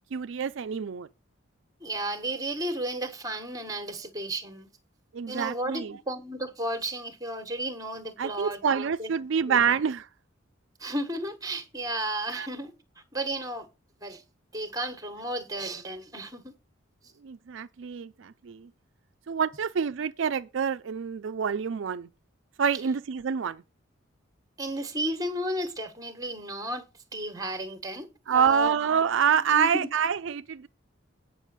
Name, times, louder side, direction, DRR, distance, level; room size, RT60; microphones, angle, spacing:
voice 1, 0.1-1.1 5.1-5.9 8.2-10.1 12.3-12.5 17.2-18.7 19.3-22.1 22.6-23.6 28.3-30.7, right 7 dB, 65° right, 0.4 m, -27 dB
voice 2, 1.8-4.7 5.3-9.1 9.4-9.7 10.8-12.7 13.1-13.7 14.0-14.2 14.5-16.5 24.6-28.1 28.3-28.7 29.5-29.9, right 1 dB, 15° right, 1.4 m, -33 dB
9.1 x 6.1 x 6.5 m
head